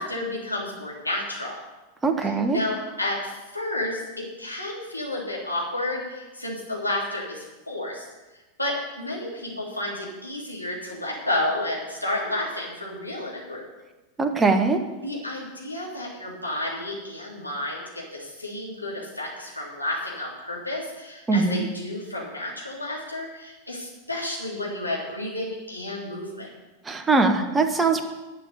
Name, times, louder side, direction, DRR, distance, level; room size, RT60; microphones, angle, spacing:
voice 1, 0.0-1.5 2.2-8.1 8.6-13.6 15.0-26.5, left 1 dB, 85° left, -4 dB, 3.4 m, -31 dB
voice 2, 2.0-2.6 14.2-14.8 21.3-21.6 26.9-28.0, right 3 dB, 15° right, 6 dB, 1.3 m, -21 dB
11.5 x 6.9 x 8.5 m, 1.1 s
figure-of-eight pair, 90°, 0 cm